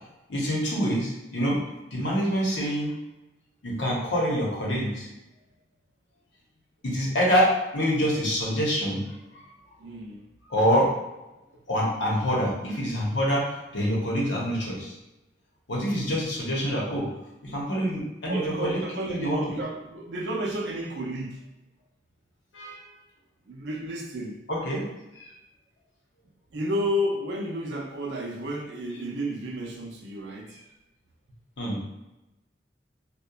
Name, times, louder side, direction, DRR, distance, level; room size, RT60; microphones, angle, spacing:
voice 1, 0.3-1.6 1.9-2.9 3.6-5.1 6.8-9.0 10.5-10.9 11.7-13.5 13.7-14.9 15.7-17.1 17.4-18.8 19.1-19.4 22.5-22.8 24.5-24.9 25.2-25.3 31.6-31.8, equal, 85° left, -4 dB, 0.8 m, -26 dB
voice 2, 9.8-10.3 18.3-21.5 23.5-24.4 26.5-30.6, equal, 70° right, 1 dB, 0.5 m, -31 dB
2.8 x 2.1 x 2.3 m, 0.98 s
head